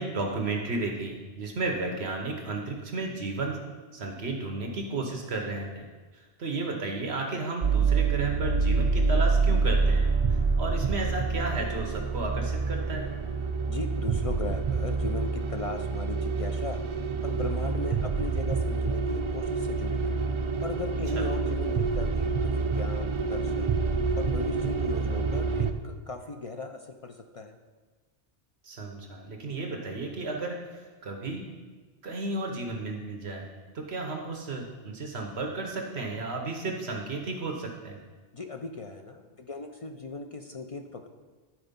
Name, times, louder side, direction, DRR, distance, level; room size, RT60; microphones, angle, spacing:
voice 1, 0.0-3.6 3.9-5.9 6.1-13.1 21.2-21.3 28.6-31.4 32.0-33.5 33.7-38.0, right 3 dB, 70° right, 2 dB, 1.2 m, -33 dB
sound 1, 7.6-25.7, right 4 dB, 50° right, 0.3 m, -27 dB
voice 2, 13.7-16.8 17.2-20.1 20.6-23.8 24.2-27.6 38.3-41.1, left 3 dB, 45° left, 5 dB, 0.5 m, -37 dB
11.5 x 4.4 x 5.3 m, 1.3 s
omnidirectional pair, 1.1 m